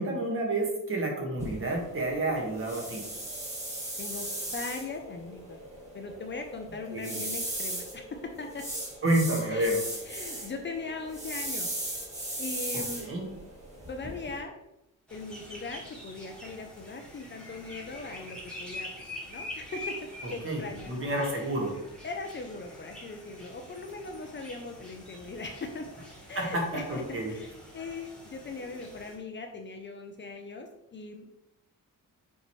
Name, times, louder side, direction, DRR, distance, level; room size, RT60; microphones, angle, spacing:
voice 1, 0.0-3.0 6.9-7.2 9.0-9.8 12.7-13.2 20.2-21.7 26.4-27.3, right 1 dB, 40° right, -1 dB, 1.7 m, -30 dB
sound 1, 1.4-14.4, right 1 dB, 20° right, 2.4 m, -38 dB
voice 2, 4.0-5.6 5.9-8.6 9.5-9.7 10.1-11.7 12.4-13.1 13.9-14.5 15.1-21.5 22.0-25.9 26.3-31.4, left 3 dB, 35° left, 4 dB, 0.6 m, -40 dB
sound 2, 15.1-29.1, left 1 dB, 5° left, 1.7 m, -45 dB
6.6 x 4.6 x 3.2 m, 0.85 s
wide cardioid pair, 150°, 34 cm